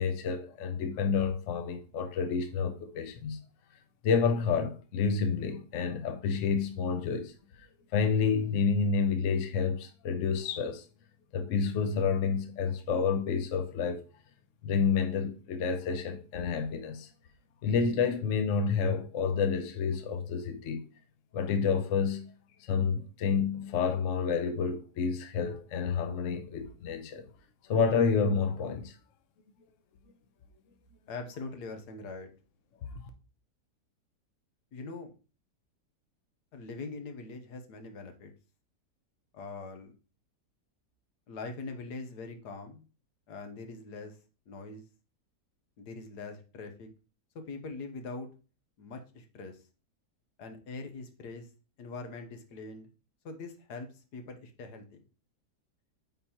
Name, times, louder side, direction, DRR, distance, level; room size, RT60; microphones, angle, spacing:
voice 1, 0.0-3.4 4.0-7.3 7.9-10.8 11.3-14.0 14.6-17.1 17.6-20.8 21.3-22.3 22.7-27.2 27.7-28.9, left 5 dB, 60° left, 1.0 m, -29 dB
voice 2, 31.1-32.3 34.7-35.1 36.5-38.3 39.3-39.9 41.3-42.8 43.3-44.2 44.5-44.8 45.8-46.9 47.3-48.3 48.8-49.6 50.4-51.5 51.8-52.9 53.2-55.0, left 3 dB, 75° left, 1.5 m, -42 dB
8.9 x 4.0 x 2.9 m
omnidirectional pair, 1.8 m